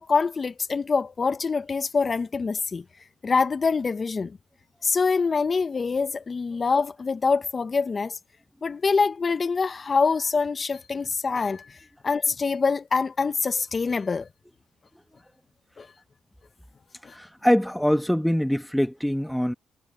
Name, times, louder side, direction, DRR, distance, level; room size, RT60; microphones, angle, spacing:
voice 1, 0.0-2.8 3.2-4.4 4.8-8.2 8.6-11.8 12.0-14.3 15.8-15.9 17.0-17.1, left 4 dB, 35° left, 0.8 m, -25 dB
voice 2, 17.1-19.5, equal, ahead, 1.3 m, -23 dB
cardioid pair, 90°, 0 cm